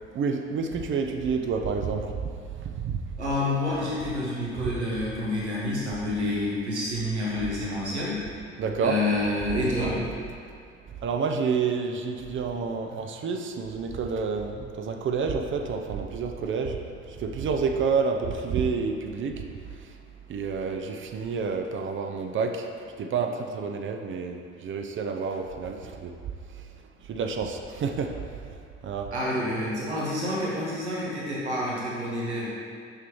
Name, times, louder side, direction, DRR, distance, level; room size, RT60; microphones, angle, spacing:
voice 1, 0.1-3.0 4.6-4.7 8.6-9.0 10.9-16.8 17.1-20.0 20.3-22.7 23.0-26.1 26.5-28.6 28.8-29.1, right 5 dB, 35° right, 4 dB, 0.6 m, -29 dB
voice 2, 3.2-8.2 8.8-10.1 12.9-13.0 29.1-32.5, left 1 dB, 90° right, -6 dB, 1.1 m, -28 dB
6.5 x 6.1 x 3.0 m, 2.3 s
figure-of-eight pair, 50°, 33 cm